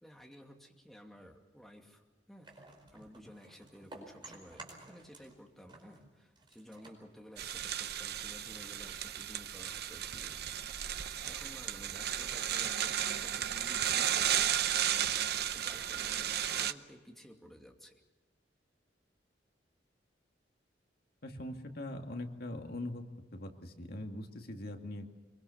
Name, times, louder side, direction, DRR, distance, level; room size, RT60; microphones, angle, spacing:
voice 1, 0.0-2.5 2.9-10.4 11.2-17.9, equal, ahead, 1 dB, 2.5 m, -54 dB
sound 1, 2.4-5.4 5.7-8.0, right 2 dB, 25° right, 4.9 m, -53 dB
sound 2, 7.4-16.7, right 10 dB, 60° right, 0.8 m, -34 dB
voice 2, 21.2-23.0 23.3-25.2, left 1 dB, 55° left, 4 dB, 2.1 m, -42 dB
24.0 x 23.5 x 7.1 m, 1.2 s
head